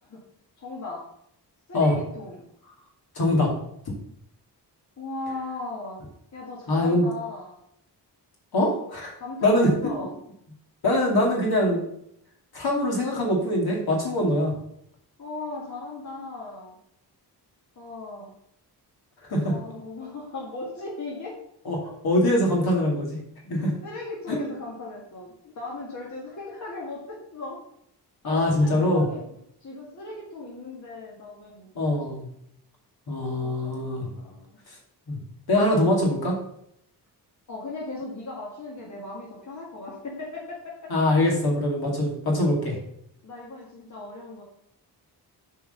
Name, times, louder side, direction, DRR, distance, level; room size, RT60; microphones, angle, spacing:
voice 1, 0.6-1.0 1.7-2.4 5.0-6.0 6.3-7.6 9.2-10.1 15.2-16.8 17.8-18.3 19.4-21.4 23.8-27.6 28.2-29.4 29.6-32.2 33.4-34.6 37.5-41.1 43.2-44.4, left 2 dB, 45° left, -4 dB, 1.8 m, -37 dB
voice 2, 3.2-3.5 6.7-7.1 8.5-9.1 9.4-9.7 10.8-11.8 12.5-14.5 19.3-19.5 21.7-21.8 22.0-23.2 23.5-23.7 24.3-24.4 28.2-29.1 31.7-32.3 33.1-34.1 35.1-35.2 35.5-36.3 40.9-42.8, left 1 dB, 65° left, -1 dB, 2.4 m, -23 dB
7.6 x 4.7 x 5.5 m, 0.72 s
wide cardioid pair, 170°, 41 cm